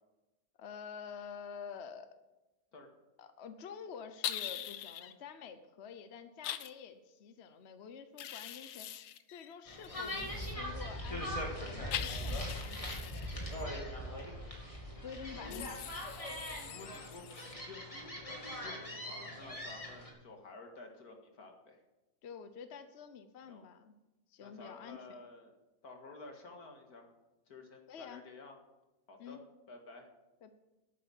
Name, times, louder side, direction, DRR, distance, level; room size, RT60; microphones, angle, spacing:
voice 1, 0.6-2.1 3.2-8.9 9.3-13.6 15.0-15.8 22.2-23.9 24.3-25.0 27.9-28.2 29.2-29.4 30.4-30.5, left 6 dB, 50° left, 9 dB, 0.9 m, -48 dB
sound 1, 4.2-5.1 6.4-6.7 8.2-10.5 11.9-13.6 15.5-17.5, left 11 dB, 90° left, 1.3 m, -43 dB
sound 2, 9.7-20.1, equal, 20° left, 2.5 m, -41 dB
voice 2, 15.3-15.7 16.6-21.8 23.5-23.6 24.4-25.5 25.8-27.1 27.5-28.6 29.1-29.4 29.7-30.1, left 3 dB, 70° left, 3 dB, 2.4 m, -52 dB
11.0 x 8.7 x 7.1 m, 1.0 s
omnidirectional pair, 1.6 m